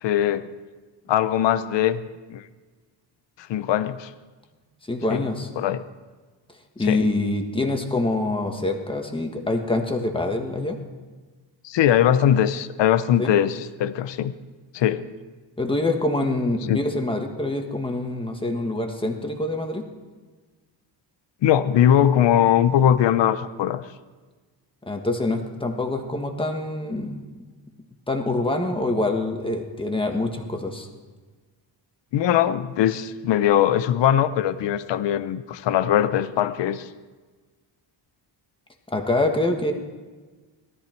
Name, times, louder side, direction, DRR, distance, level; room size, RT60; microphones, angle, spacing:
voice 1, 0.0-0.5 1.1-2.5 3.4-4.1 5.1-5.2 5.6-5.8 6.9-7.0 11.6-14.3 14.7-15.1 16.7-16.8 21.4-23.8 32.1-36.9, left 10 dB, 70° left, 14 dB, 0.8 m, -21 dB
voice 2, 4.9-5.5 6.8-10.8 13.2-13.3 15.6-19.9 24.9-27.2 28.1-30.9 38.9-39.7, left 2 dB, 10° left, 3 dB, 1.5 m, -25 dB
19.0 x 13.5 x 4.5 m, 1.4 s
wide cardioid pair, 155°, 45 cm